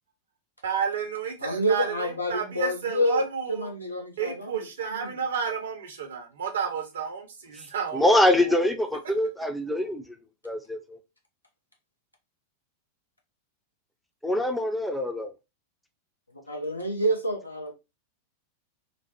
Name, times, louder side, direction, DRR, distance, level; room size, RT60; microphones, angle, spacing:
voice 1, 0.6-3.7 4.2-8.7, right 6 dB, 65° right, 0.7 m, -31 dB
voice 2, 1.4-3.2 3.5-4.7 4.9-5.2 16.5-17.7, equal, 85° left, 0.7 m, -28 dB
voice 3, 7.9-10.2 10.4-11.0 14.2-15.3, left 1 dB, 5° left, 0.5 m, -24 dB
3.0 x 2.0 x 2.8 m
figure-of-eight pair, 90°, 0 cm